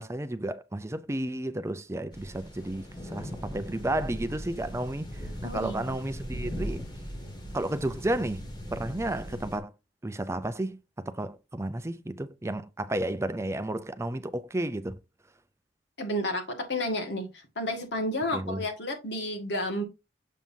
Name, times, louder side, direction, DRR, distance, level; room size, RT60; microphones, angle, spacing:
voice 1, 0.0-6.8 7.5-8.4 8.7-9.7 10.0-10.8 11.1-14.9 18.3-18.6, right 1 dB, 15° right, 0.5 m, -32 dB
sound 1, 2.1-9.6, equal, 25° left, 1.9 m, -39 dB
voice 2, 5.4-5.9 16.0-17.3 17.5-19.8, left 1 dB, 65° left, 1.7 m, -31 dB
7.4 x 5.4 x 2.7 m
head